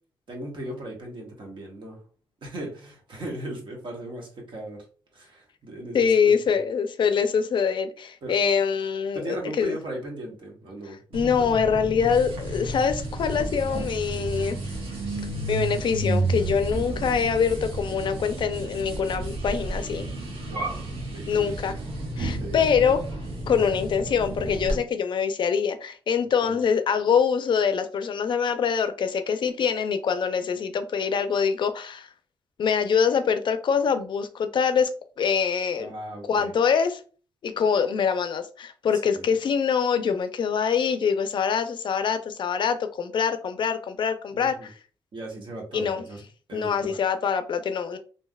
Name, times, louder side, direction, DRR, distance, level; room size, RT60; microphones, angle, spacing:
voice 1, 0.3-2.0 2.4-4.8 5.1-6.6 8.2-8.3 9.1-11.3 16.7-17.0 20.5-20.8 21.1-21.7 22.4-22.7 26.4-26.6 35.7-36.5 39.1-39.3 44.3-44.7 45.1-46.2 46.5-47.0, right 1 dB, 60° right, 1.2 m, -38 dB
voice 2, 5.9-9.8 11.1-14.6 15.1-15.2 15.5-20.1 21.3-21.8 22.2-23.0 23.5-32.1 32.6-34.9 35.2-35.9 36.3-37.0 37.4-44.7 45.7-46.0 46.5-48.0, left 6 dB, 60° left, 0.4 m, -24 dB
sound 1, 11.1-24.8, right 2 dB, 90° right, 0.9 m, -31 dB
3.3 x 2.6 x 2.2 m
cardioid pair, 75°, 9 cm